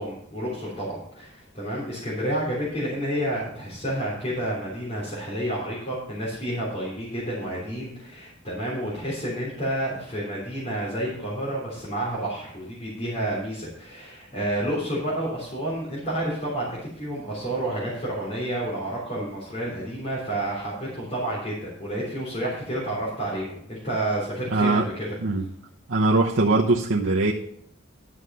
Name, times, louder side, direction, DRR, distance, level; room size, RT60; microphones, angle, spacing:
voice 1, 0.0-25.1, right 1 dB, 30° left, -8 dB, 3.6 m, -30 dB
voice 2, 24.5-24.8 25.2-25.4 25.9-27.3, right 2 dB, 80° right, -2 dB, 0.9 m, -21 dB
11.5 x 6.4 x 5.6 m, 0.68 s
head